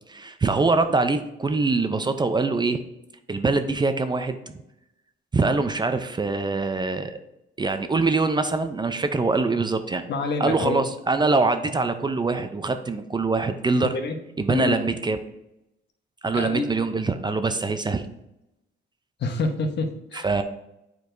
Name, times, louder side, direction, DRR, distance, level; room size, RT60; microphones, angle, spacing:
voice 1, 0.1-2.8 3.3-4.6 5.3-7.2 7.6-10.0 10.4-14.0 14.4-15.2 16.2-18.1 20.1-20.4, right 3 dB, 20° right, 8 dB, 0.5 m, -24 dB
voice 2, 10.1-10.8 13.9-14.2 14.5-14.8 16.3-16.7 19.2-20.3, left 3 dB, 60° left, 6 dB, 0.9 m, -27 dB
8.2 x 4.6 x 2.6 m, 0.88 s
cardioid pair, 90°, 20 cm